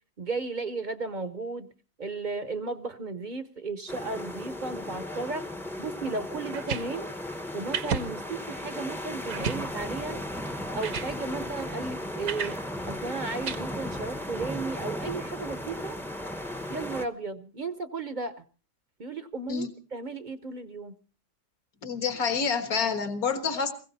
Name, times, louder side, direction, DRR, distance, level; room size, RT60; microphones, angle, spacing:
voice 1, 0.2-1.7 2.0-5.5 5.8-7.1 7.5-10.2 10.7-12.6 12.8-16.0 16.7-18.4 19.0-20.9, right 3 dB, 40° right, 12 dB, 0.8 m, -34 dB
sound 1, 3.9-17.1, left 1 dB, ahead, 0.6 m, -36 dB
sound 2, 6.5-6.9 7.7-8.1 8.6-8.7 9.3-9.6 10.5-10.6 10.8-11.1 12.3-12.6 13.4-13.6, right 7 dB, 65° right, 1.4 m, -31 dB
voice 2, 21.8-23.7, left 5 dB, 65° left, 9 dB, 2.1 m, -28 dB
20.5 x 16.0 x 4.1 m, 0.37 s
omnidirectional pair, 1.7 m